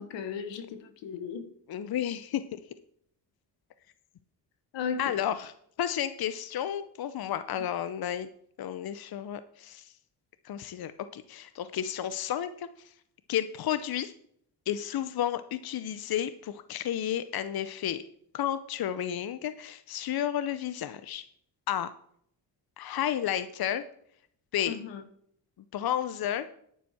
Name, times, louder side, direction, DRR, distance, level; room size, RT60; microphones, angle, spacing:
voice 1, 0.0-1.4 4.7-5.0 24.7-25.0, left 6 dB, 90° left, 9 dB, 1.5 m, -35 dB
voice 2, 1.7-2.6 5.0-5.5 5.8-8.3 8.6-9.9 10.4-12.7 13.3-14.1 14.7-18.0 18.3-21.2 21.7-21.9 22.8-23.8 24.5-24.8 25.7-26.5, left 10 dB, 55° left, 12 dB, 0.8 m, -32 dB
10.0 x 9.6 x 4.4 m, 0.65 s
cardioid pair, 75°, 43 cm